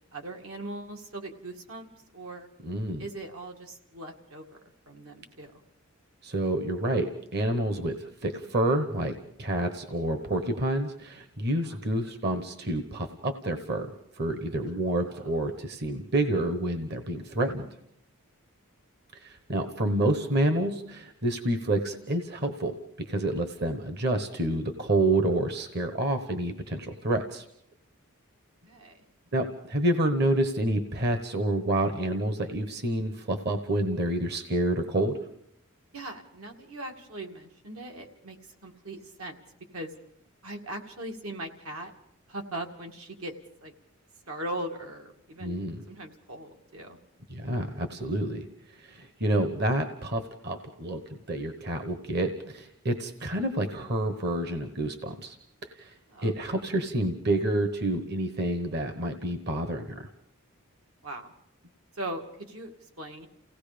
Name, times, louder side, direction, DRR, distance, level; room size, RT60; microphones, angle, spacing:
voice 1, 0.1-2.5 3.0-4.6 4.9-5.5 11.6-11.8 15.1-15.3 28.7-29.0 35.9-38.4 38.6-39.4 39.7-39.9 40.4-41.9 42.3-43.3 43.6-43.7 44.3-45.6 45.9-47.0 56.1-56.3 61.0-61.3 61.9-63.3, right 1 dB, 80° right, 3 dB, 2.2 m, -39 dB
voice 2, 2.6-3.0 6.2-13.9 14.2-17.7 19.1-22.8 23.1-27.4 29.3-35.2 45.4-45.8 47.3-48.5 48.8-51.0 51.3-55.4 55.8-55.9 56.2-60.1, right 1 dB, 50° right, 8 dB, 1.1 m, -28 dB
29.0 x 17.5 x 5.1 m, 0.73 s
head